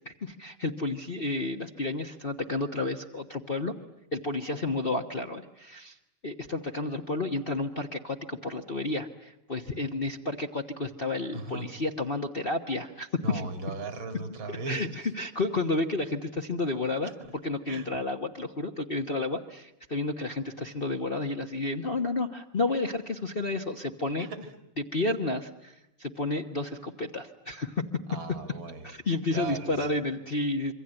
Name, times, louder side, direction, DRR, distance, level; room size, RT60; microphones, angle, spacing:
voice 1, 0.0-3.7 4.1-6.0 6.2-13.4 14.5-17.1 17.4-24.3 24.9-27.9 28.8-30.7, left 2 dB, 30° left, 3 dB, 1.2 m, -31 dB
voice 2, 11.3-11.7 13.2-14.9 17.7-17.9 24.2-24.4 28.1-28.9 29.3-30.0, right 3 dB, 60° right, 8 dB, 3.3 m, -37 dB
27.0 x 24.5 x 8.9 m, 0.84 s
omnidirectional pair, 2.4 m